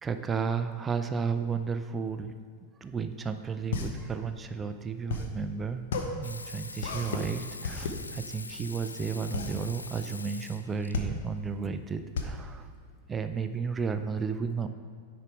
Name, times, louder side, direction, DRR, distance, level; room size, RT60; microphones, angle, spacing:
voice 1, 0.0-2.3 2.8-5.9 6.1-12.7 13.1-14.7, right 5 dB, 20° right, 9 dB, 0.4 m, -33 dB
sound 1, 3.2-13.6, left 4 dB, 60° left, 0.8 m, -35 dB
Water tap faucet / Sink (filling or washing), 6.2-10.9 12.5-12.6, left 3 dB, 80° left, 0.3 m, -43 dB
9.7 x 5.1 x 4.6 m, 2.2 s
figure-of-eight pair, 90°, 0 cm